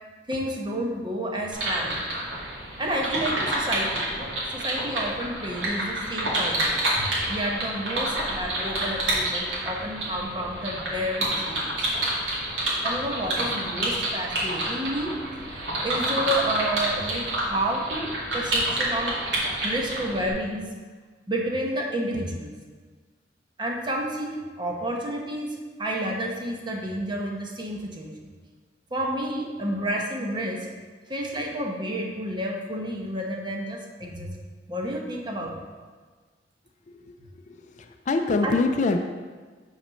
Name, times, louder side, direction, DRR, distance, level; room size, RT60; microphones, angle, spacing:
voice 1, 0.3-2.0 2.8-11.9 12.8-15.2 15.4-19.2 19.6-20.7 21.3-22.5 23.6-28.3 28.9-30.7 31.1-34.3 34.7-35.5 38.4-38.5, right 1 dB, 25° right, 0 dB, 1.0 m, -30 dB
sound 1, 1.5-20.3, right 1 dB, 90° right, 2.2 m, -28 dB
voice 2, 36.9-39.0, left 3 dB, 40° left, 6 dB, 0.4 m, -26 dB
6.0 x 4.2 x 6.3 m, 1.4 s
head